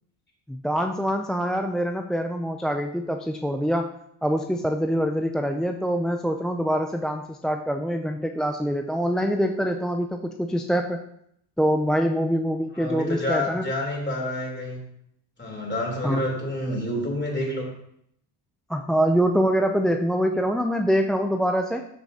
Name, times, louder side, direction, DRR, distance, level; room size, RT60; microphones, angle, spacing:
voice 1, 0.5-3.9 4.2-11.0 11.6-13.7 16.0-16.3 18.7-21.8, equal, ahead, 4 dB, 0.3 m, -24 dB
voice 2, 12.7-14.8 15.4-17.7, left 1 dB, 20° left, -1 dB, 3.4 m, -28 dB
13.0 x 5.8 x 2.8 m, 0.73 s
cardioid pair, 85°, 48 cm